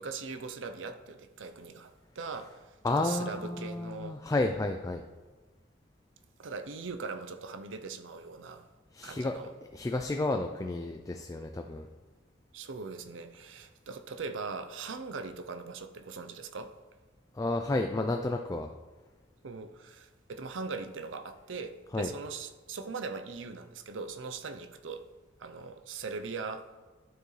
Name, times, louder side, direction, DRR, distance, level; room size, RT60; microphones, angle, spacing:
voice 1, 0.0-4.2 6.4-8.6 9.0-9.5 12.5-16.7 19.4-25.1 25.4-26.7, right 4 dB, 80° right, 8 dB, 0.6 m, -40 dB
voice 2, 2.8-5.0 8.9-9.3 9.7-11.8 17.3-18.7 21.9-22.1, left 2 dB, 20° left, 5 dB, 0.3 m, -31 dB
12.0 x 4.6 x 3.2 m, 1.3 s
head